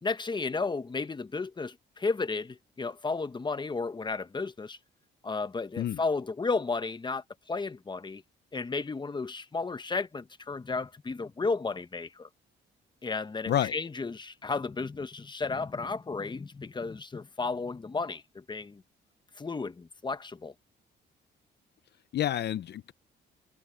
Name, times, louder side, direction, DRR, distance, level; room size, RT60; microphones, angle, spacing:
voice 1, 0.0-4.8 5.2-8.2 8.5-12.3 13.0-18.8 19.4-20.5, left 4 dB, 20° left, 1.1 m, -33 dB
voice 2, 22.1-22.9, left 11 dB, 55° left, 0.6 m, -29 dB
cardioid pair, 90°, 20 cm